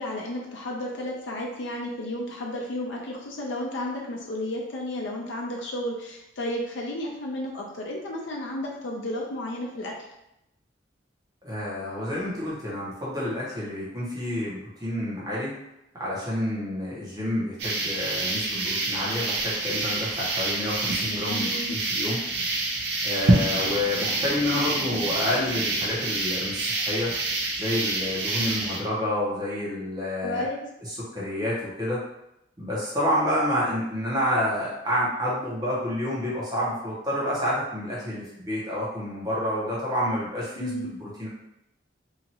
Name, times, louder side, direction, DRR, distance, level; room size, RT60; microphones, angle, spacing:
voice 1, 0.0-9.9 21.3-21.8 30.2-30.7 40.6-40.9, left 1 dB, 90° left, -1 dB, 0.6 m, -32 dB
voice 2, 11.4-15.6 15.9-22.2 23.0-27.1 27.5-30.5 30.8-32.0 32.6-41.3, left 1 dB, 20° right, -7 dB, 0.9 m, -29 dB
sound 1, 17.6-28.8, right 2 dB, 65° right, 0.6 m, -27 dB
2.8 x 2.5 x 2.8 m, 0.85 s
head